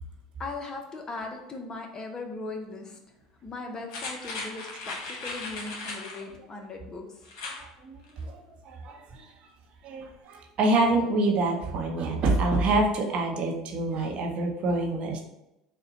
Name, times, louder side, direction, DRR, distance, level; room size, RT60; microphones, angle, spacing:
voice 1, 0.4-3.0 3.4-7.3, left 3 dB, 30° left, 3 dB, 0.7 m, -38 dB
sound 1, 3.9-6.2 7.3-7.6 8.0-8.1, left 3 dB, 65° left, 1.0 m, -37 dB
voice 2, 7.6-9.5 9.8-15.2, right 2 dB, 50° right, 1 dB, 0.7 m, -27 dB
3.9 x 2.2 x 4.0 m, 0.91 s
hypercardioid pair, 80°, 2 cm